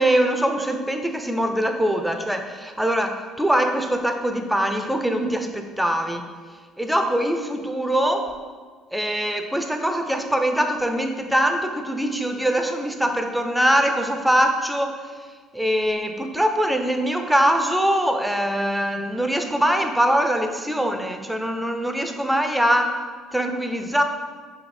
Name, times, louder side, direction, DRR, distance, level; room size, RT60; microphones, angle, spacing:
voice 1, 0.0-6.3 6.8-8.3 8.9-15.1 15.5-22.9 23.3-24.0, equal, 5° right, 5 dB, 0.4 m, -22 dB
4.1 x 2.7 x 3.2 m, 1.5 s
supercardioid pair, 80°, 0 cm